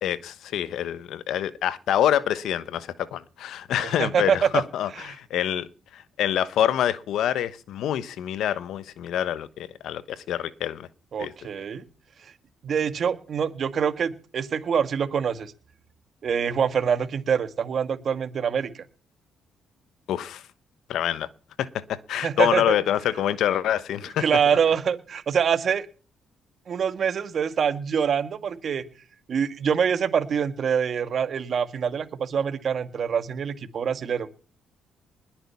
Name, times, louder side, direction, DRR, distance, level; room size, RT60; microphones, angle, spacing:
voice 1, 0.0-5.7 5.9-10.9 11.2-11.3 20.1-20.4 20.9-21.3 21.6-24.3, left 11 dB, 75° left, 1.1 m, -26 dB
voice 2, 3.8-4.6 11.1-11.8 12.6-15.5 16.2-18.8 22.2-22.7 24.2-25.9 26.7-28.8 29.3-34.3, right 7 dB, 55° right, 1.7 m, -25 dB
20.5 x 9.0 x 5.6 m
cardioid pair, 90°, 0 cm